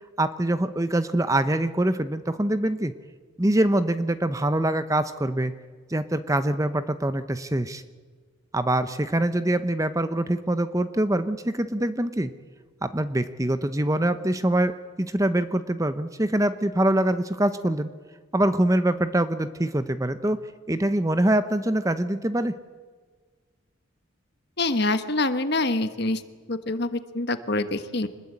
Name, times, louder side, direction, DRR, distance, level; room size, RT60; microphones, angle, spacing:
voice 1, 0.2-2.9 3.4-5.5 5.9-7.8 8.5-12.3 12.8-17.9 18.3-20.4 20.7-22.6, right 1 dB, 15° right, 12 dB, 0.7 m, -24 dB
voice 2, 24.6-26.2 26.5-28.1, left 2 dB, 50° left, 10 dB, 1.4 m, -25 dB
25.5 x 20.5 x 8.5 m, 1.5 s
head